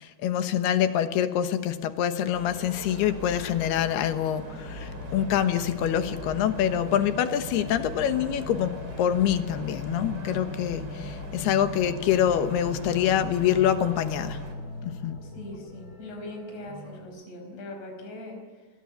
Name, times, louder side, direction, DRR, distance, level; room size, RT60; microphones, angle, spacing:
voice 1, 0.0-14.4 14.8-15.2, left 10 dB, 75° left, 9 dB, 3.1 m, -26 dB
sound 1, 2.3-14.5, right 3 dB, 30° right, 4.4 m, -43 dB
sound 2, 2.5-17.0, left 2 dB, 25° left, 3.5 m, -39 dB
voice 2, 15.2-18.7, left 1 dB, 40° left, 3 dB, 6.0 m, -41 dB
29.0 x 21.5 x 9.4 m, 1.4 s
omnidirectional pair, 4.9 m